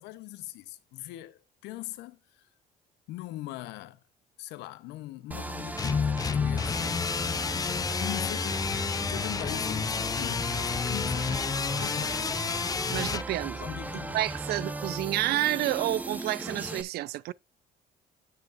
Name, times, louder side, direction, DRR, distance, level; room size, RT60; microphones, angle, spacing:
voice 1, 0.0-2.5 3.1-4.0 4.4-7.0 8.0-11.4 11.8-12.5 13.6-14.2, left 16 dB, 90° left, 0.8 m, -41 dB
sound 1, 5.3-16.8, right 1 dB, 10° right, 0.9 m, -37 dB
sound 2, 5.8-13.2, left 5 dB, 20° left, 0.4 m, -30 dB
voice 2, 12.9-13.6 13.9-17.3, right 15 dB, 70° right, 0.4 m, -30 dB
9.3 x 7.7 x 2.5 m
cardioid pair, 110°, 17 cm